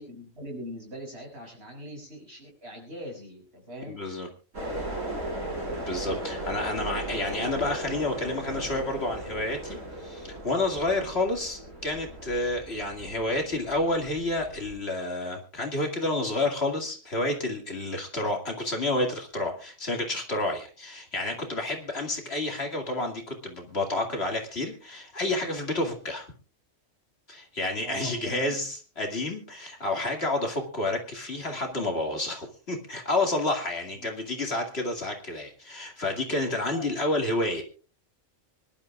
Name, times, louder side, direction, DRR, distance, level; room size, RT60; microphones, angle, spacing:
voice 1, 0.0-4.0 27.8-28.6 34.0-34.1 36.7-36.8, equal, 55° right, 0 dB, 6.6 m, -41 dB
voice 2, 3.9-4.3 5.7-26.3 27.3-37.6, left 2 dB, 55° left, 2 dB, 2.6 m, -30 dB
sound 1, 4.5-14.7, right 1 dB, 75° right, 5.1 m, -37 dB
24.5 x 12.0 x 2.4 m, 0.36 s
omnidirectional pair, 1.3 m